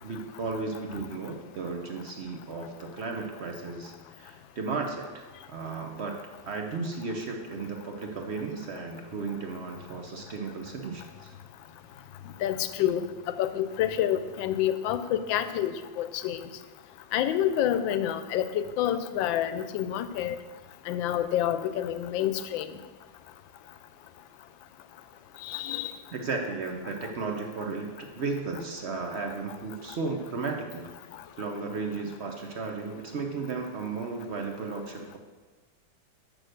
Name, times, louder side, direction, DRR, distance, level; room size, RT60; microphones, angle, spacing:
voice 1, 0.0-6.2 6.5-11.3 26.1-30.9 31.4-35.2, right 4 dB, 60° right, 3 dB, 0.6 m, -34 dB
voice 2, 12.4-13.1 13.4-16.5 17.1-20.4 20.9-22.7 25.4-25.9, left 11 dB, 85° left, 11 dB, 1.3 m, -28 dB
6.5 x 6.2 x 6.4 m, 1.4 s
omnidirectional pair, 2.0 m